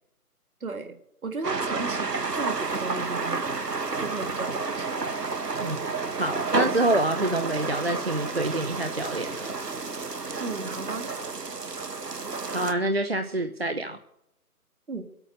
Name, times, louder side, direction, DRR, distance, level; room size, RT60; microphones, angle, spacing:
voice 1, 0.6-1.0 1.2-3.4 4.0-4.9 10.4-11.1 14.9-15.1, right 4 dB, 60° right, 6 dB, 2.1 m, -35 dB
sound 1, 1.4-12.7, right 3 dB, 80° right, 1.5 m, -30 dB
voice 2, 6.2-9.5 12.5-14.0, right 1 dB, 40° right, 7 dB, 0.6 m, -27 dB
22.5 x 9.0 x 3.9 m, 0.81 s
figure-of-eight pair, 160°, 47 cm